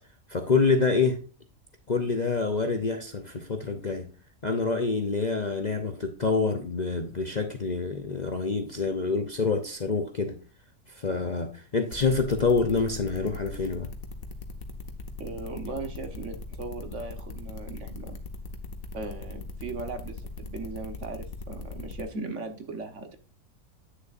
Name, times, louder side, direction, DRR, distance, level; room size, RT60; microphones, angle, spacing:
voice 1, 0.3-1.2 1.9-4.1 4.4-10.4 10.9-13.9, left 4 dB, 40° left, 0.7 m, -27 dB
sound 1, 11.9-22.0, left 3 dB, 70° left, 1.5 m, -39 dB
voice 2, 15.2-18.2 18.9-23.2, right 3 dB, 55° right, 1.5 m, -38 dB
9.5 x 6.7 x 2.6 m
omnidirectional pair, 1.5 m